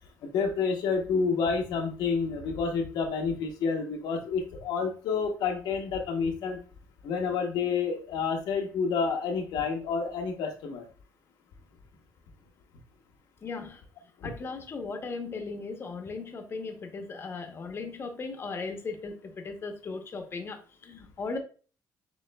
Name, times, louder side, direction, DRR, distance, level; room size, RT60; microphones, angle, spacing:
voice 1, 0.2-6.6 7.0-10.9 14.2-14.3, left 5 dB, 85° left, 3 dB, 0.9 m, -29 dB
voice 2, 13.4-13.8 14.2-21.4, left 4 dB, 35° left, 5 dB, 0.7 m, -37 dB
6.9 x 3.0 x 2.2 m, 0.38 s
cardioid pair, 120°, 7 cm